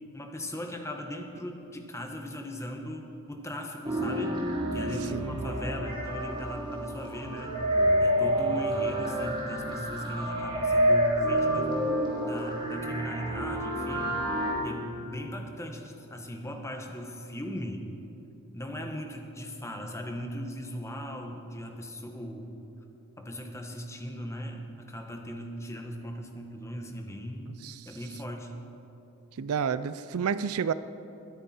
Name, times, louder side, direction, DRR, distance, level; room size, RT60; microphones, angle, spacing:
voice 1, 0.1-4.4 4.7-7.6 8.0-11.7 12.2-14.1 14.6-17.8 18.5-22.6 23.2-28.5, equal, 15° left, 3 dB, 1.2 m, -38 dB
sound 1, 3.9-14.5, equal, 20° right, 3.2 m, -28 dB
voice 2, 29.4-30.7, right 6 dB, 70° right, 15 dB, 0.4 m, -30 dB
21.5 x 10.0 x 4.4 m, 2.9 s
head